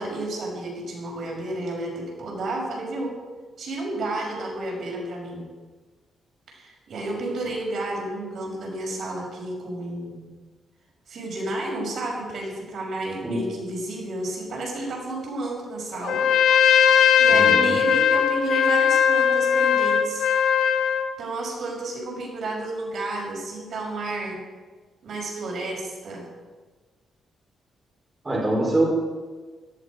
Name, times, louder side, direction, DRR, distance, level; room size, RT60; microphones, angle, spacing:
voice 1, 0.0-3.2 3.6-5.5 6.5-10.2 11.1-16.3 17.2-20.3 21.2-24.4 25.0-26.2, right 2 dB, 55° right, -1 dB, 5.8 m, -31 dB
Trumpet, 16.0-21.1, left 7 dB, 85° left, 1.4 m, -19 dB
voice 2, 17.3-17.8 28.2-28.8, right 1 dB, 20° right, -3 dB, 4.8 m, -24 dB
18.0 x 15.5 x 5.2 m, 1.4 s
cardioid pair, 145°, 0 cm